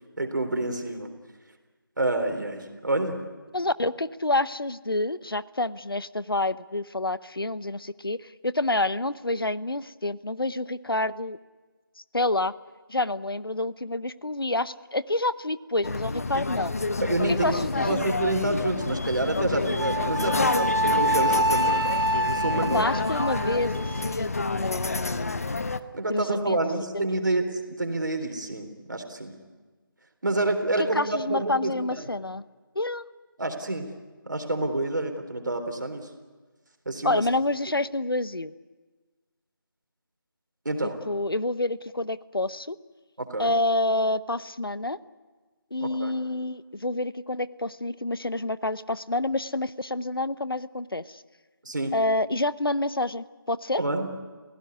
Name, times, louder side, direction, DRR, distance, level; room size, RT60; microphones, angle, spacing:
voice 1, 0.2-1.1 2.0-3.2 17.0-21.9 22.1-22.9 25.9-29.4 30.2-31.7 33.4-33.9 34.3-36.1 36.9-37.2 40.7-41.0 43.2-43.5 45.8-46.1 51.7-51.9 53.8-54.2, right 2 dB, 60° right, 6 dB, 3.8 m, -28 dB
voice 2, 3.5-11.4 12.1-12.5 12.9-16.7 17.3-18.0 22.7-25.6 26.1-26.6 26.9-27.2 30.8-32.4 32.7-33.0 37.0-38.5 40.8-42.8 43.4-45.0 45.7-51.2 51.9-53.8, left 2 dB, 85° left, 16 dB, 0.9 m, -28 dB
sound 1, 15.8-25.8, left 3 dB, 40° left, 1.0 m, -29 dB
Wind instrument woodwind instrument, 19.8-24.1, right 1 dB, 80° right, 1.0 m, -26 dB
28.0 x 16.5 x 9.7 m, 1.3 s
figure-of-eight pair, 165°, 12 cm